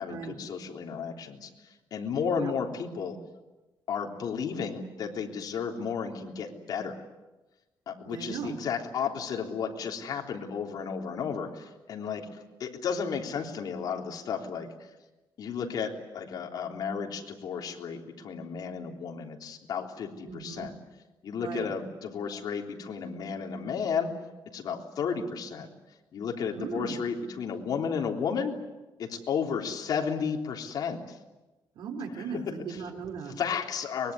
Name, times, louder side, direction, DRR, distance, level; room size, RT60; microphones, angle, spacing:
voice 1, 0.0-3.2 3.9-7.0 7.9-14.7 15.4-20.7 21.2-24.1 24.5-25.7 26.1-28.6 29.0-31.2 33.3-34.1, left 6 dB, 55° left, 2 dB, 3.5 m, -33 dB
voice 2, 8.0-8.6 20.2-20.7 21.4-21.7 26.6-27.0 31.7-33.4, right 5 dB, 80° right, 5 dB, 4.4 m, -37 dB
24.0 x 22.0 x 9.6 m, 1.1 s
cardioid pair, 155°, 8 cm